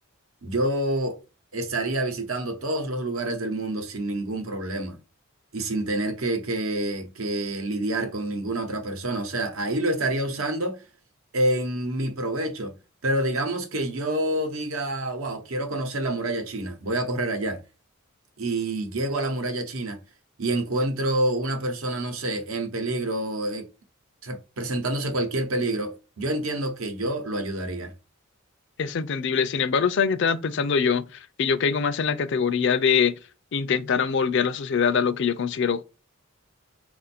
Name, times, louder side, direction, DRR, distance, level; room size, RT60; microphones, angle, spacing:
voice 1, 0.4-1.2 1.5-5.0 5.5-10.8 11.3-12.7 13.0-17.6 18.4-20.0 20.4-23.7 24.2-27.9, right 1 dB, 80° right, 0.9 m, -27 dB
voice 2, 28.8-33.2 33.5-35.8, left 6 dB, 60° left, 0.4 m, -23 dB
4.3 x 2.5 x 4.2 m
head